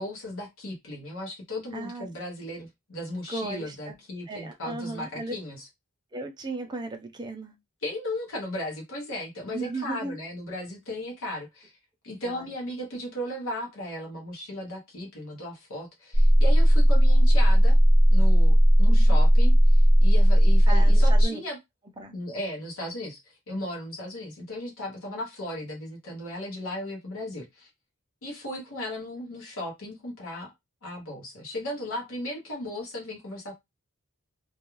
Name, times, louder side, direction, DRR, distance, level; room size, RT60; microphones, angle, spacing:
voice 1, 0.0-5.7 7.8-11.7 12.0-17.8 18.1-21.6 22.1-23.2 23.5-27.7 28.2-30.5 30.8-33.5, left 1 dB, 60° left, 0.9 m, -36 dB
voice 2, 1.7-2.1 3.3-3.9 4.3-5.4 6.1-7.5 9.5-10.2 12.2-12.5 18.9-19.2 20.7-21.4 22.0-22.2, right 2 dB, 20° right, 0.5 m, -36 dB
sound 1, 16.1-21.3, equal, 90° left, 1.0 m, -17 dB
2.3 x 2.3 x 3.0 m
head